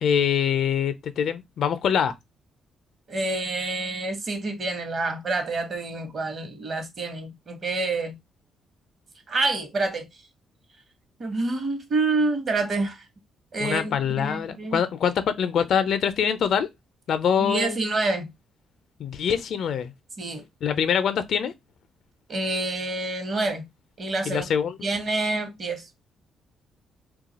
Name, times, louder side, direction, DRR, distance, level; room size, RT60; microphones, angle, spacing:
voice 1, 0.0-2.1 13.6-16.7 17.1-17.8 19.0-19.9 20.6-21.5 24.3-25.0, left 8 dB, 65° left, 0.4 m, -24 dB
voice 2, 3.1-8.2 9.3-10.1 11.2-13.0 13.5-14.8 17.4-18.3 20.2-20.4 22.3-23.7 24.0-24.4 24.8-25.8, right 3 dB, 45° right, 1.0 m, -27 dB
2.4 x 2.3 x 3.9 m
cardioid pair, 90°, 0 cm